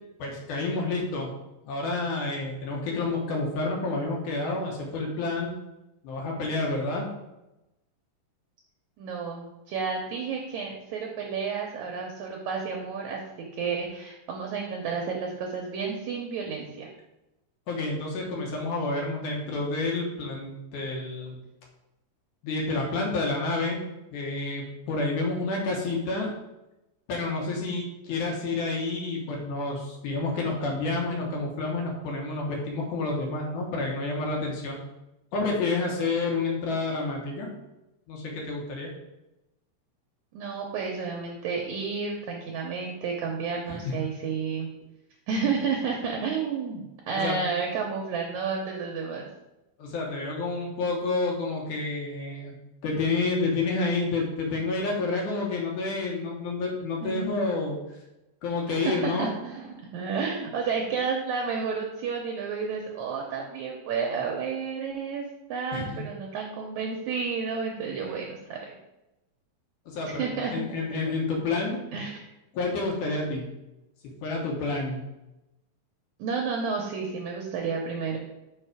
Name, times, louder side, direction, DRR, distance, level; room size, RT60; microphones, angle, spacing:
voice 1, 0.2-1.3 1.7-5.5 6.0-7.1 17.7-21.4 22.4-23.8 24.1-26.3 27.1-34.8 35.3-37.5 38.1-38.9 43.7-43.8 47.2-47.4 49.8-52.6 52.8-57.8 58.4-59.3 65.7-66.0 68.0-68.2 69.9-71.8 72.5-73.5 74.2-75.0, left 3 dB, 70° left, -1 dB, 2.5 m, -29 dB
voice 2, 9.0-16.9 40.3-44.7 45.3-49.3 57.0-57.3 58.7-68.6 70.0-70.6 71.9-72.2 76.2-78.2, right 5 dB, 75° right, 0 dB, 1.9 m, -31 dB
5.5 x 5.3 x 4.8 m, 0.95 s
omnidirectional pair, 4.0 m